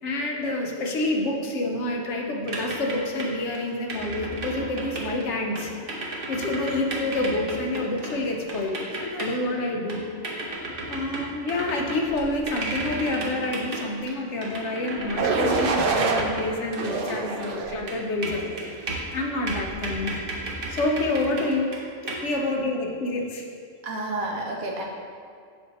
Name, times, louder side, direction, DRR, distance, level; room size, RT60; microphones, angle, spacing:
voice 1, 0.0-5.7 6.3-10.0 10.9-21.7 22.0-23.4, left 2 dB, 60° left, 1 dB, 1.1 m, -28 dB
sound 1, 2.4-3.6 3.9-5.2 5.6-9.6 9.9-17.1 17.4-19.1 19.5-21.8 22.1-22.2, right 2 dB, 45° right, 1.1 m, -33 dB
sound 2, 15.2-16.2 16.8-17.8 18.4-18.8, right 4 dB, 65° right, 0.5 m, -26 dB
voice 2, 23.8-24.8, right 2 dB, 85° right, 0 dB, 1.4 m, -30 dB
6.9 x 4.9 x 4.1 m, 2.2 s
omnidirectional pair, 1.4 m